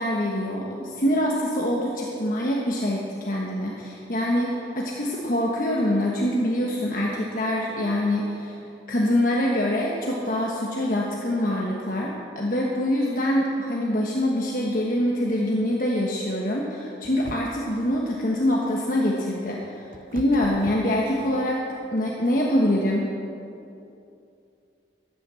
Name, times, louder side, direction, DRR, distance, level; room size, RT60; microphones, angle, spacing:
voice 1, 0.0-8.6 8.9-19.9 20.1-21.6 21.9-23.1, left 1 dB, 50° left, -3 dB, 1.3 m, -25 dB
sound 1, 17.0-17.8 19.3-21.6, right 2 dB, 50° right, 0.7 m, -41 dB
14.0 x 9.3 x 6.9 m, 2.7 s
head